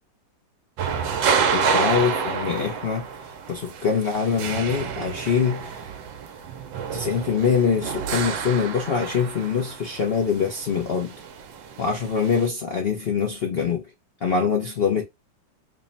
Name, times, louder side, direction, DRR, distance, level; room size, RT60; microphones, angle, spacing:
sound 1, 0.8-12.5, right 6 dB, 85° right, 1.4 m, -29 dB
voice 1, 1.5-3.0 3.5-5.8 6.9-11.1 11.8-13.9 14.2-15.0, left 6 dB, 85° left, 0.5 m, -24 dB
3.7 x 2.1 x 3.8 m
omnidirectional pair, 2.0 m